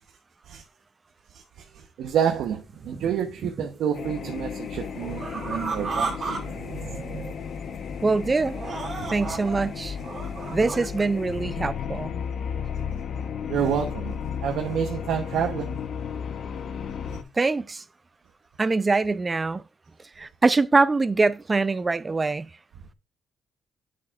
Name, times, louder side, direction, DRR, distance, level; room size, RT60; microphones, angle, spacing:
voice 1, 1.3-7.3 8.9-9.1 13.5-14.2 14.4-15.8 17.1-17.2, right 8 dB, 80° right, 0.9 m, -29 dB
sound 1, 2.1-2.2 2.7-3.8 4.2-6.4 6.7-7.3 7.7-7.9 8.4-9.6 10.0-11.0, right 4 dB, 45° right, 2.0 m, -34 dB
sound 2, 3.9-17.2, left 7 dB, 60° left, 1.0 m, -34 dB
voice 2, 8.0-8.6 9.1-10.0 10.5-12.1 17.4-17.8 18.6-19.6 20.2-22.5, right 3 dB, 25° right, 0.5 m, -23 dB
8.6 x 6.5 x 2.4 m
cardioid pair, 90°, 0 cm